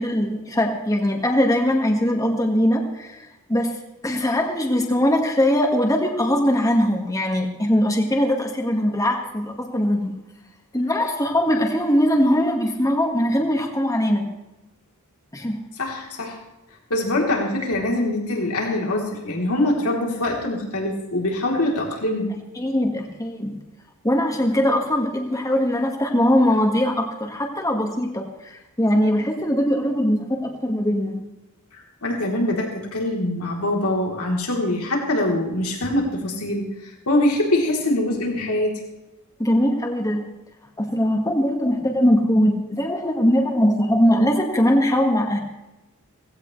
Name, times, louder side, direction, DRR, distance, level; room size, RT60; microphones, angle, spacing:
voice 1, 0.0-3.8 4.0-10.1 10.7-14.3 15.3-15.6 22.6-23.6 24.0-31.2 39.4-40.3 40.8-45.4, equal, 15° left, 2 dB, 1.7 m, -21 dB
voice 2, 15.8-16.4 16.9-22.3 31.7-38.8, left 1 dB, 85° left, -1 dB, 3.4 m, -23 dB
17.5 x 16.5 x 3.2 m, 0.98 s
head